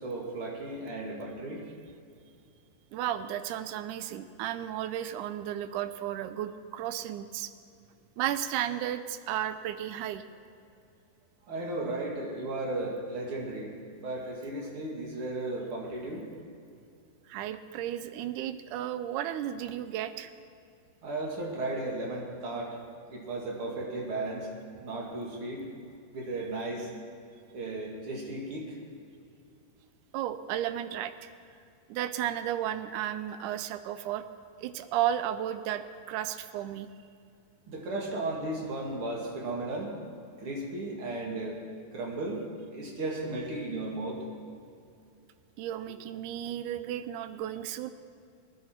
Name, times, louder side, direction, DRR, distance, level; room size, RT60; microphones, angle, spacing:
voice 1, 0.0-1.6 11.5-16.2 21.0-22.8 23.1-24.5 24.8-25.6 26.1-26.9 27.5-28.8 37.7-40.0 40.4-41.6 41.9-42.5 42.7-44.2, right 2 dB, 45° right, -2 dB, 2.5 m, -35 dB
voice 2, 2.9-7.5 8.2-10.2 17.3-20.3 30.1-31.3 31.9-34.2 34.6-36.9 45.6-47.9, right 11 dB, 80° right, 11 dB, 1.9 m, -33 dB
19.5 x 10.5 x 4.4 m, 2.4 s
omnidirectional pair, 4.0 m